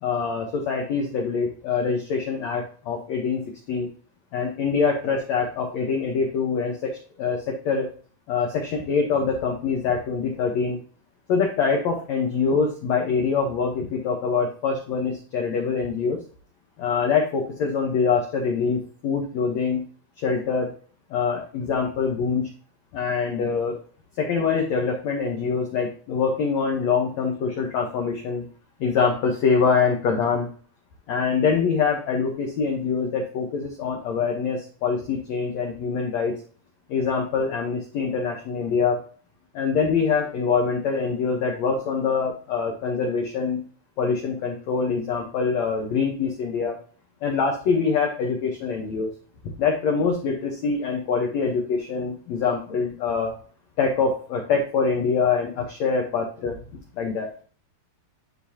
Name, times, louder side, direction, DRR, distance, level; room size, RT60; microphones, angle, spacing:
voice 1, 0.0-3.4 3.7-3.9 4.3-7.9 8.3-10.8 11.3-16.2 16.8-19.8 20.2-20.7 21.1-22.5 22.9-23.8 24.2-28.4 28.8-30.5 31.1-36.3 36.9-39.0 39.5-43.6 44.0-46.8 47.2-49.1 49.6-53.3 53.8-56.6 57.0-57.3, left 5 dB, 85° left, 2 dB, 1.5 m, -24 dB
12.0 x 4.1 x 2.8 m, 0.42 s
omnidirectional pair, 4.7 m